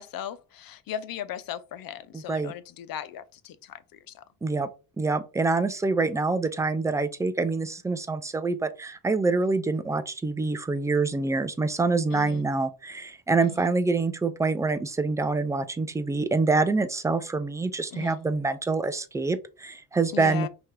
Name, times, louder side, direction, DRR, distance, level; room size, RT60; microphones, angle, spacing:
voice 1, 0.0-3.7 4.1-4.2 12.1-12.4 13.4-13.7 17.9-18.2 20.1-20.5, left 10 dB, 60° left, 0.7 m, -37 dB
voice 2, 2.1-2.5 4.4-4.7 5.0-20.5, right 3 dB, 10° right, 0.3 m, -26 dB
5.6 x 2.9 x 3.2 m
cardioid pair, 130°, 39 cm